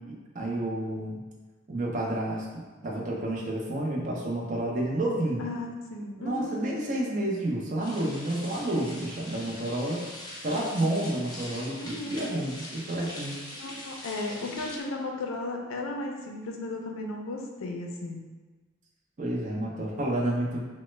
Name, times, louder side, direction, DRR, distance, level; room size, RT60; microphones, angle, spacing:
voice 1, 0.3-1.2 1.7-2.5 2.8-5.4 6.2-10.0 10.4-13.4 19.2-20.6, right 1 dB, 40° right, -3 dB, 0.5 m, -30 dB
voice 2, 5.4-6.7 11.7-12.4 13.5-18.2, left 2 dB, 75° left, 1 dB, 0.4 m, -35 dB
sound 1, 7.8-14.8, left 1 dB, 20° left, 0.7 m, -42 dB
3.0 x 2.1 x 3.1 m, 1.3 s
head